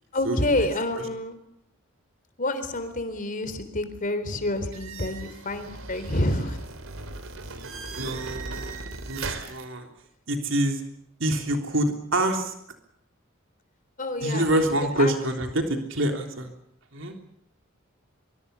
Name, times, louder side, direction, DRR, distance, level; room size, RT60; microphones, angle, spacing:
voice 1, 0.1-1.4 2.4-6.6 14.0-14.5 15.0-15.1, left 1 dB, 40° left, 10 dB, 3.8 m, -28 dB
sound 1, 4.7-9.6, right 3 dB, 85° right, 3.3 m, -37 dB
voice 2, 8.0-9.9 10.3-10.8 11.2-12.5 14.2-16.5 16.9-17.1, right 1 dB, 65° right, 4 dB, 3.4 m, -26 dB
24.5 x 23.5 x 6.9 m, 0.74 s
head